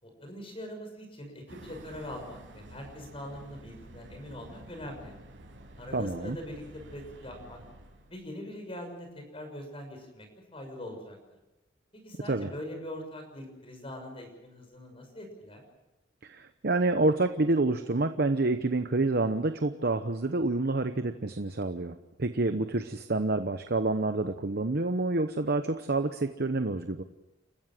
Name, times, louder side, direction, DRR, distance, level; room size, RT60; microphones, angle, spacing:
voice 1, 0.0-5.1 5.8-7.6 8.1-10.3 10.5-11.2 11.9-15.6, left 1 dB, 30° left, 4 dB, 6.4 m, -42 dB
sound 1, 1.5-8.2, right 1 dB, 75° right, 5.6 m, -50 dB
voice 2, 5.9-6.4 12.3-12.5 16.2-27.0, right 2 dB, 55° right, 8 dB, 0.9 m, -28 dB
30.0 x 15.0 x 7.6 m, 0.98 s
head